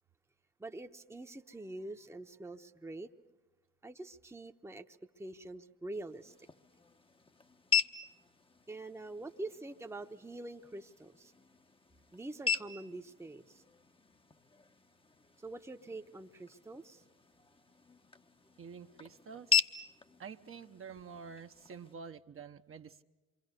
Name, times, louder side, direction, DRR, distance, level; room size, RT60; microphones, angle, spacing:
voice 1, 0.6-3.1 3.8-6.3 8.7-11.3 12.1-13.6 15.4-17.0, right 2 dB, 10° right, 5 dB, 1.0 m, -45 dB
sound 1, 5.9-21.9, left 6 dB, 20° left, 0.9 m, -39 dB
voice 2, 18.6-19.7 20.2-23.0, right 6 dB, 45° right, 6 dB, 1.0 m, -48 dB
27.5 x 23.5 x 6.7 m, 1.2 s
cardioid pair, 90°, 30 cm